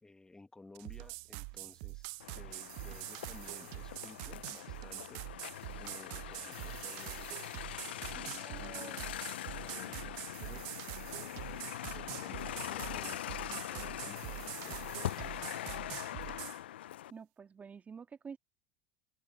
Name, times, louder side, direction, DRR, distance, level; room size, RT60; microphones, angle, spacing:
voice 1, 0.0-7.3 7.8-9.0 9.5-10.8 11.2-15.7, left 2 dB, 10° left, 1.6 m, -56 dB
sound 1, 0.7-16.6, right 27 dB, 65° right, 0.7 m, -45 dB
sound 2, 2.2-17.1, left 13 dB, 85° left, 0.4 m, -42 dB
voice 2, 8.1-9.0 17.1-18.4, right 6 dB, 25° right, 1.8 m, -49 dB
open air
hypercardioid pair, 85°, 6 cm